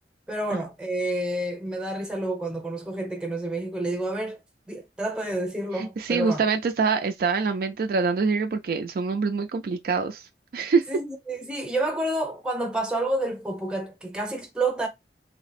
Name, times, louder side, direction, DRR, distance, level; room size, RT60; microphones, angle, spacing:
voice 1, 0.3-4.4 4.7-6.4 10.9-14.9, right 1 dB, 5° right, 0.7 m, -29 dB
voice 2, 5.8-10.3 10.5-10.9, right 5 dB, 55° right, 0.3 m, -25 dB
3.2 x 2.0 x 4.1 m
head